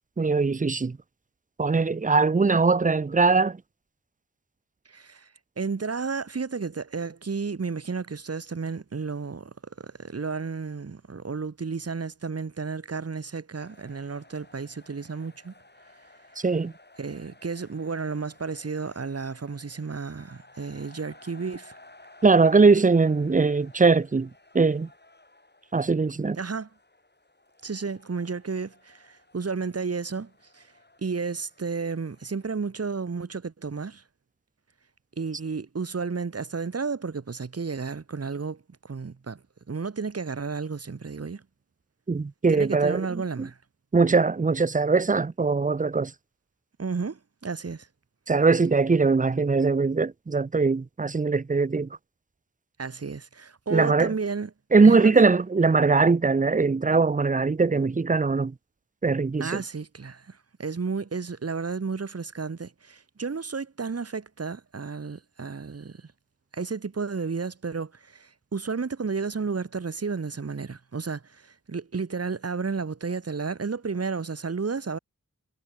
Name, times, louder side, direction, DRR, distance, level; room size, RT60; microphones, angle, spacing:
voice 1, 0.2-1.0 1.6-3.6 16.4-16.7 22.2-24.3 24.5-24.9 25.7-26.4 42.1-43.5 43.9-46.1 48.3-51.9 53.7-54.1 54.7-58.5 59.0-59.6, right 4 dB, 25° right, 0.6 m, -21 dB
voice 2, 4.9-5.3 5.6-15.5 17.0-21.7 26.4-26.7 27.6-30.7 31.0-34.0 35.2-39.4 39.7-41.4 42.5-43.6 46.8-47.9 52.8-54.5 54.8-55.2 59.4-66.0 66.5-75.0, right 4 dB, 45° right, 1.1 m, -32 dB
sound 1, 13.6-32.5, left 2 dB, 30° left, 3.3 m, -55 dB
cardioid pair, 45°, 34 cm